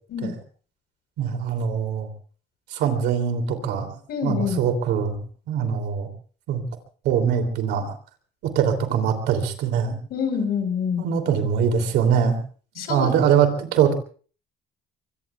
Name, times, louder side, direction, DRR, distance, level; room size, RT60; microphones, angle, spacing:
voice 1, 1.2-2.1 2.7-3.9 4.2-5.2 5.5-6.1 6.5-6.6 7.0-7.9 8.5-9.9 11.0-12.4 12.7-13.9, right 7 dB, 85° right, 6 dB, 3.0 m, -22 dB
voice 2, 4.1-4.6 10.1-11.0 12.8-13.2, left 6 dB, 65° left, 7 dB, 4.4 m, -26 dB
25.0 x 23.5 x 2.4 m, 0.41 s
cardioid pair, 110°, 17 cm